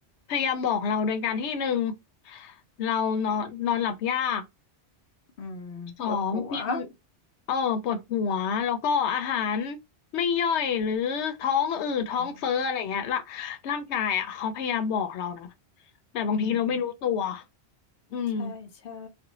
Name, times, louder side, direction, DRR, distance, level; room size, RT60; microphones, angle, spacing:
voice 1, 0.3-2.0 2.3-4.4 6.0-6.9 7.5-9.8 10.1-15.5 16.1-17.4 18.1-18.5, left 7 dB, 90° left, 0.9 m, -27 dB
voice 2, 5.4-6.8 12.2-12.3 16.3-16.8 18.4-19.1, left 4 dB, 60° left, 0.7 m, -36 dB
2.5 x 2.1 x 2.9 m
omnidirectional pair, 1.1 m